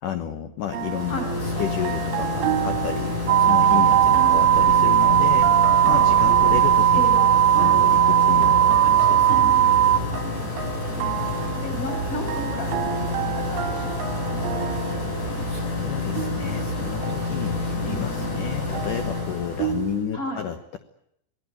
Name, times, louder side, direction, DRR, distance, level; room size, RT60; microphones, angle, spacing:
voice 1, 0.0-7.0 7.6-9.6 15.4-20.8, left 10 dB, 70° left, 9 dB, 2.1 m, -32 dB
sound 1, 0.6-20.0, left 2 dB, 40° left, 7.8 m, -28 dB
sound 2, 0.7-20.0, right 9 dB, 60° right, 3.7 m, -32 dB
sound 3, 3.3-10.0, right 11 dB, 45° right, 2.4 m, -17 dB
voice 2, 6.9-7.3 10.9-11.2 11.6-14.4 20.1-20.5, left 1 dB, 20° left, 6 dB, 5.7 m, -34 dB
28.0 x 20.0 x 8.5 m, 0.74 s
omnidirectional pair, 5.4 m